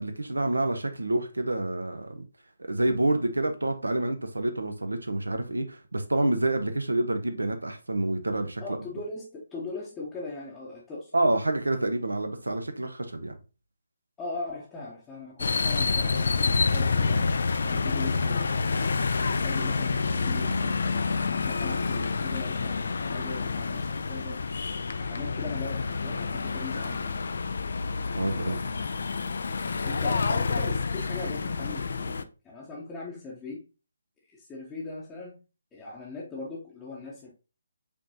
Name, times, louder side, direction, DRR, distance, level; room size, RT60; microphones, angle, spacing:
voice 1, 0.0-2.3 2.6-8.6 11.1-13.4 28.1-28.6, right 2 dB, 70° right, 0.8 m, -28 dB
voice 2, 8.6-11.1 14.2-17.2 17.6-24.4 24.9-27.4 28.2-28.8 29.8-33.7 34.3-35.4 35.7-37.3, left 3 dB, 10° left, 0.8 m, -40 dB
sound 1, 15.4-32.2, left 4 dB, 50° left, 0.3 m, -28 dB
5.2 x 3.2 x 2.7 m
figure-of-eight pair, 145°, 0 cm